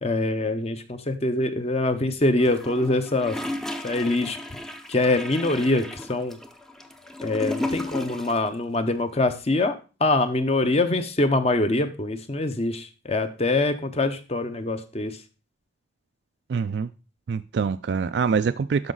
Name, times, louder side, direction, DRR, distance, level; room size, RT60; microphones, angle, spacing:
voice 1, 0.0-3.4 3.8-4.4 4.9-6.4 7.2-9.7 10.0-15.1, left 2 dB, 35° left, 0.8 m, -24 dB
Gurgling / Toilet flush, 2.4-8.5 8.7-8.8, left 1 dB, 5° left, 0.6 m, -34 dB
voice 2, 16.5-16.9 17.3-18.9, right 5 dB, 60° right, 0.3 m, -25 dB
12.0 x 5.1 x 3.9 m
head